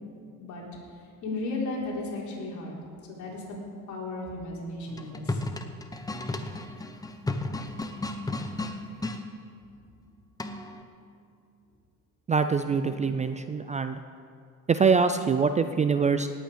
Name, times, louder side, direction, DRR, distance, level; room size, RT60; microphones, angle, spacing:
voice 1, 1.2-2.7 3.1-3.4 3.9-5.4, left 2 dB, 55° left, -4 dB, 4.0 m, -34 dB
sound 1, 4.9-9.2 10.4-10.8, left 2 dB, 10° left, 0.8 m, -33 dB
voice 2, 12.3-14.0 14.7-16.3, right 5 dB, 20° right, 9 dB, 0.4 m, -24 dB
18.5 x 9.1 x 5.1 m, 2.3 s
cardioid pair, 120°, 33 cm